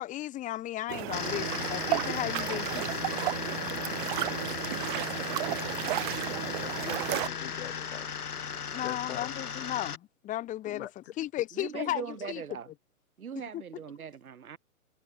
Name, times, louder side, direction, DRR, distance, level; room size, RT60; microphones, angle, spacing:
voice 1, 0.0-3.1 8.7-10.9 11.2-12.4, left 14 dB, 15° left, 2.6 m, -35 dB
sound 1, 0.9-7.3, right 20 dB, 35° right, 2.9 m, -33 dB
sound 2, 1.1-10.0, left 7 dB, 85° left, 2.1 m, -36 dB
voice 2, 4.1-4.8 5.1-5.6 6.4-9.4 10.7-11.5, left 13 dB, 45° left, 2.2 m, -45 dB
voice 3, 11.5-12.7 13.2-14.6, right 7 dB, 75° right, 4.6 m, -40 dB
hypercardioid pair, 145°, 44 cm